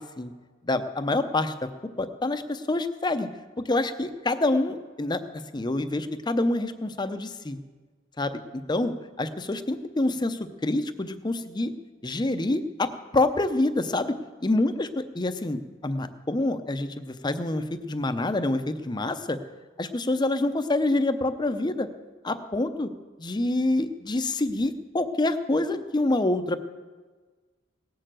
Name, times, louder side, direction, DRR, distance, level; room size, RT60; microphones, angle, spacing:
voice 1, 0.6-1.5 2.0-3.3 3.6-5.2 5.5-7.6 8.2-11.7 12.0-14.2 14.4-19.4 19.8-21.9 22.2-22.9 23.2-26.7, left 2 dB, 20° left, 9 dB, 0.6 m, -27 dB
18.0 x 6.7 x 7.6 m, 1.4 s
head